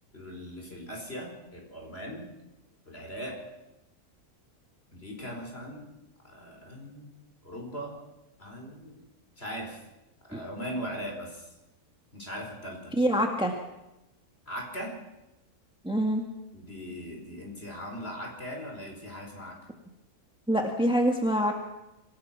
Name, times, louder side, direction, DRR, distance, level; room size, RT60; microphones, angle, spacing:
voice 1, 0.1-2.3 2.9-3.4 4.9-5.9 6.2-7.1 7.4-8.0 8.4-9.0 9.4-9.8 10.3-11.5 12.1-12.9 14.5-14.9 16.5-19.6, equal, 40° left, 0 dB, 5.4 m, -39 dB
voice 2, 13.0-13.5 15.8-16.2 20.5-21.5, equal, 5° right, 3 dB, 1.8 m, -25 dB
26.5 x 17.0 x 6.0 m, 0.94 s
omnidirectional pair, 1.6 m